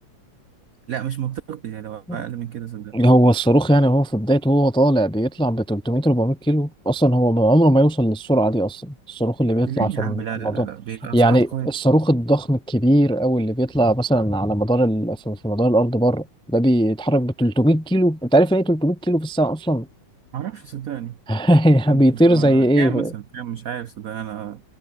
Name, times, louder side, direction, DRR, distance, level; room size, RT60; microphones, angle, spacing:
voice 1, 0.9-3.0 9.7-11.7 20.3-21.2 21.9-24.6, right 10 dB, 80° right, 0.7 m, -31 dB
voice 2, 2.9-10.7 11.1-19.9 21.3-23.1, right 1 dB, 10° left, 0.3 m, -19 dB
omnidirectional pair, 2.4 m